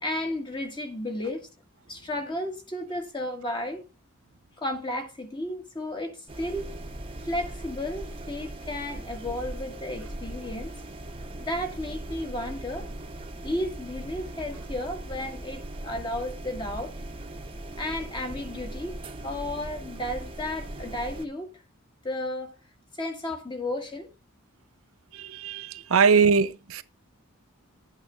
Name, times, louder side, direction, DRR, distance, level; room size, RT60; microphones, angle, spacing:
voice 1, 0.0-1.5 1.9-3.9 4.6-6.7 7.2-10.7 11.4-12.9 13.4-17.0 17.8-21.6 22.0-22.5 23.0-24.1, left 1 dB, 20° left, 1.8 m, -33 dB
sound 1, 6.3-21.3, right 1 dB, 25° right, 1.0 m, -39 dB
voice 2, 25.1-26.8, right 5 dB, 70° right, 0.6 m, -22 dB
12.5 x 8.7 x 3.4 m
head